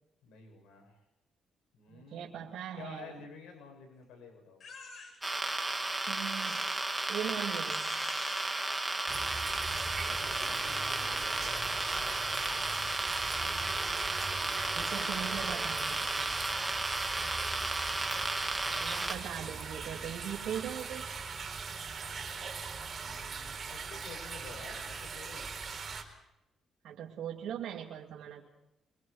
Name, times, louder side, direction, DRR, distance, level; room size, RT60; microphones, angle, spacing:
voice 1, 0.2-1.0 1.7-2.5 2.8-4.6 10.0-13.0 22.9-25.5, left 5 dB, 85° left, 2 dB, 7.9 m, -52 dB
voice 2, 1.9-3.2 6.1-6.7 7.1-8.0 14.7-16.4 18.6-21.1 26.8-28.5, right 9 dB, 80° right, -2 dB, 2.6 m, -40 dB
Crying sobbing, 4.6-5.4 6.3-7.1 7.6-9.8, left 4 dB, 55° left, 7.6 m, -50 dB
sound 1, 5.2-19.1, right 2 dB, 10° right, 2.4 m, -34 dB
sound 2, 9.1-26.0, right 5 dB, 45° right, 3.9 m, -40 dB
25.0 x 23.5 x 5.1 m, 0.90 s
cardioid pair, 90°, 0 cm